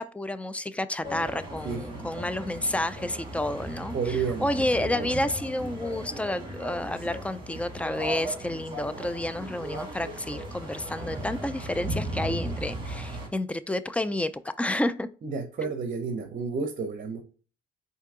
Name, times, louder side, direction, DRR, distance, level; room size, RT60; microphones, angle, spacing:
voice 1, 0.0-15.1 15.6-15.7, left 1 dB, 5° left, 0.3 m, -30 dB
sound 1, 1.0-13.3, right 1 dB, 25° right, 1.6 m, -37 dB
voice 2, 3.9-4.5 4.8-5.1 15.2-17.2, right 5 dB, 45° right, 0.7 m, -31 dB
4.5 x 2.7 x 3.6 m
cardioid pair, 90°, 20 cm